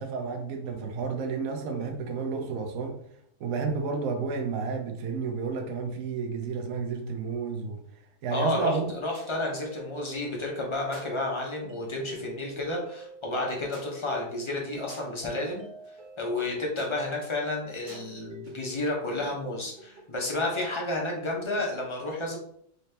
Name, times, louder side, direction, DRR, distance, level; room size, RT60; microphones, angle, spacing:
voice 1, 0.0-3.0 3.4-7.8 8.2-9.0, right 5 dB, 65° right, 3 dB, 0.9 m, -31 dB
voice 2, 8.3-15.6 16.2-22.4, left 2 dB, 30° left, -1 dB, 0.5 m, -31 dB
sound 1, 8.6-20.7, right 1 dB, 45° right, 0.7 m, -47 dB
4.0 x 2.7 x 3.3 m, 0.68 s
omnidirectional pair, 1.7 m